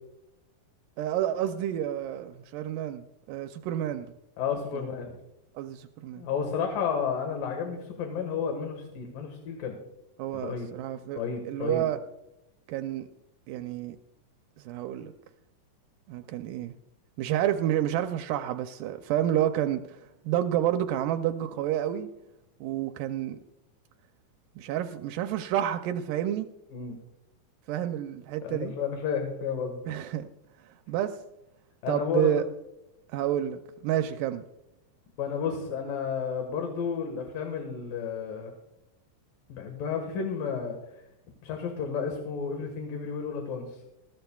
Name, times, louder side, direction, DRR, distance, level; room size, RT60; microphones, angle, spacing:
voice 1, 1.0-4.1 4.7-4.9 5.6-6.3 10.2-12.0 12.7-13.1 13.5-14.0 14.6-15.1 16.1-16.7 17.2-22.1 22.6-23.4 24.6-26.5 27.7-28.7 29.9-30.3 30.9-31.2 31.9-32.5 33.1-34.4, right 11 dB, 85° right, 8 dB, 2.2 m, -29 dB
voice 2, 4.4-5.1 6.2-9.8 10.3-10.7 11.1-11.9 26.7-27.0 28.4-29.8 31.8-32.4 35.2-38.5 39.5-40.8 41.4-43.9, left 6 dB, 85° left, 4 dB, 3.2 m, -32 dB
21.0 x 15.5 x 2.3 m, 0.92 s
omnidirectional pair, 3.8 m